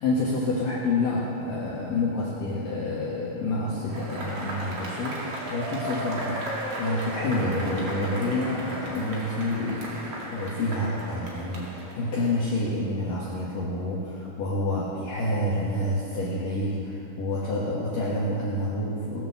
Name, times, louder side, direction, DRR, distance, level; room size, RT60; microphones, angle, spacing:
voice 1, 0.0-19.3, left 2 dB, 60° left, -6 dB, 2.5 m, -28 dB
Cheering / Applause / Crowd, 3.9-12.6, right 1 dB, 45° right, 2.1 m, -35 dB
19.0 x 7.2 x 7.0 m, 2.4 s
omnidirectional pair, 5.7 m